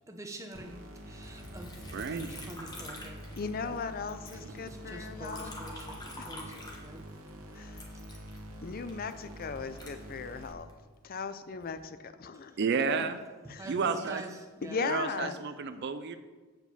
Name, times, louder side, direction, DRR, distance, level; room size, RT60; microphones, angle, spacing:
voice 1, 0.1-3.3 3.6-3.7 4.9-7.0 13.5-14.3 14.6-14.9 15.2-15.3, right 1 dB, 15° right, 4 dB, 0.8 m, -46 dB
sound 1, 0.5-10.5, equal, 65° right, 1.2 m, -46 dB
Liquid, 1.2-3.8 4.1-7.3 7.7-10.8 11.3-11.9, left 1 dB, 20° left, 1.2 m, -46 dB
voice 2, 1.9-2.3 4.8-4.9 12.6-13.2 13.7-14.3 14.8-16.2, right 5 dB, 50° right, 9 dB, 0.4 m, -31 dB
voice 3, 3.4-5.5 6.2-6.3 7.5-7.9 8.6-10.7 11.0-12.9 13.5-13.8 14.6-15.3, left 5 dB, 40° left, 11 dB, 0.5 m, -37 dB
7.9 x 4.9 x 6.9 m, 1.4 s
head